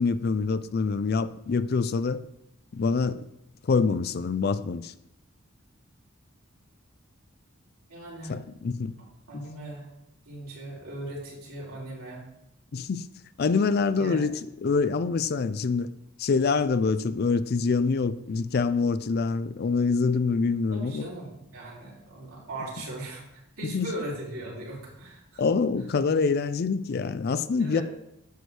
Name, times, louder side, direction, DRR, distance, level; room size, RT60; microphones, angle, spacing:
voice 1, 0.0-2.2 2.7-3.2 3.6-4.9 8.3-8.9 12.7-13.1 13.4-15.9 16.2-21.1 23.7-23.9 25.4-27.8, left 4 dB, 45° left, 0.4 m, -25 dB
voice 2, 7.9-8.4 9.0-9.9 10.2-12.2 14.0-14.2 20.7-25.4 27.6-27.8, right 1 dB, 85° right, 2.9 m, -39 dB
9.3 x 6.3 x 3.3 m
head